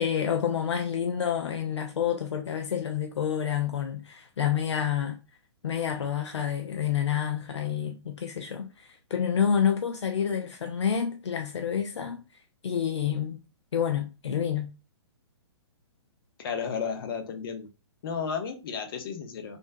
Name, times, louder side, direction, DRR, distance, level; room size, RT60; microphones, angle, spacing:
voice 1, 0.0-5.2 5.6-12.2 12.6-13.4 13.7-14.7, left 8 dB, 75° left, 0.5 m, -28 dB
voice 2, 16.4-17.7 18.0-19.6, left 6 dB, 55° left, 0.9 m, -33 dB
3.5 x 2.6 x 2.6 m
hypercardioid pair, 130°, 15 cm